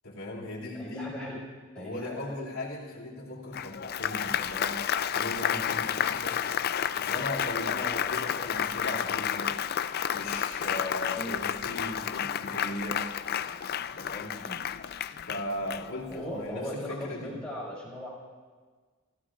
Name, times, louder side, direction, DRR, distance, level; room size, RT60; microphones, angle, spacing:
voice 1, 0.0-1.1 1.8-6.4 6.9-9.6 10.1-13.1 13.9-14.4 15.3-17.4, left 1 dB, 75° left, -3 dB, 2.9 m, -37 dB
voice 2, 0.7-1.4 1.7-2.4 11.1-11.4 12.2-12.3 14.4-14.6 16.1-18.1, left 1 dB, 5° left, -6 dB, 5.6 m, -38 dB
Applause, 3.5-16.3, left 9 dB, 50° left, 0.4 m, -31 dB
30.0 x 15.5 x 2.5 m, 1.5 s
head